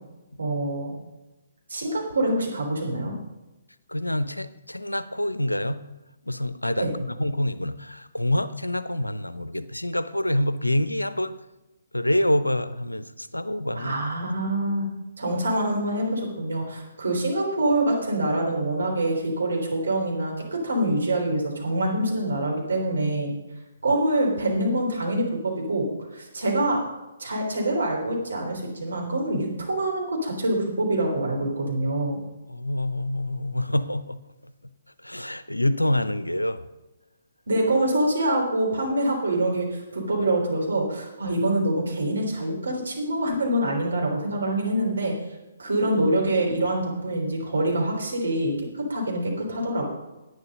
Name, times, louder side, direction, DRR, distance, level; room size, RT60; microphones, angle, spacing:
voice 1, 0.4-0.9 1.7-3.1 6.8-6.9 13.8-14.9 15.2-23.3 23.8-26.8 27.2-32.2 37.5-45.2 45.6-49.9, right 1 dB, 65° right, 0 dB, 3.5 m, -25 dB
voice 2, 3.9-5.8 6.2-11.3 11.9-14.3 23.9-24.0 32.5-34.2 35.0-36.6, left 1 dB, 85° left, 14 dB, 0.6 m, -26 dB
10.5 x 9.4 x 5.2 m, 1.0 s
figure-of-eight pair, 130°, 0 cm